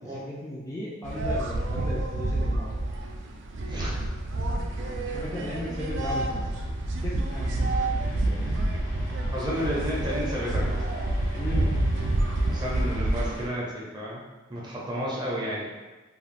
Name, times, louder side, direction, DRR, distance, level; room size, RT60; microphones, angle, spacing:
voice 1, 0.0-2.7 5.0-6.5 7.0-7.5 11.3-11.7, left 1 dB, 15° left, -7 dB, 0.3 m, -36 dB
sound 1, 1.0-13.5, right 1 dB, 65° right, 0.3 m, -28 dB
sound 2, 7.3-13.4, left 1 dB, 60° left, 0.7 m, -44 dB
voice 2, 9.3-10.8 12.5-14.2 14.5-15.7, equal, 20° right, -5 dB, 0.6 m, -32 dB
2.4 x 2.3 x 3.2 m, 1.2 s
head